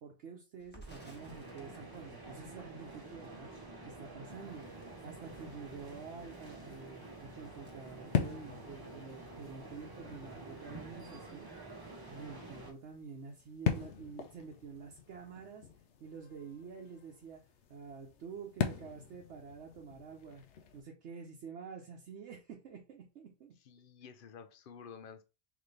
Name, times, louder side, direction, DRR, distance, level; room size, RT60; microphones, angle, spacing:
voice 1, 0.0-15.7 16.0-17.4 17.7-20.4 20.7-23.5, right 5 dB, 75° right, 1.0 m, -49 dB
Crackle, 0.6-8.7 9.0-9.1 9.4-10.2, right 1 dB, 10° left, 1.1 m, -61 dB
sound 1, 0.9-12.7, right 2 dB, 20° right, 0.9 m, -49 dB
sound 2, 4.3-20.8, left 7 dB, 80° left, 1.0 m, -42 dB
voice 2, 23.6-25.2, left 6 dB, 55° left, 0.7 m, -51 dB
4.0 x 3.2 x 3.2 m
omnidirectional pair, 1.2 m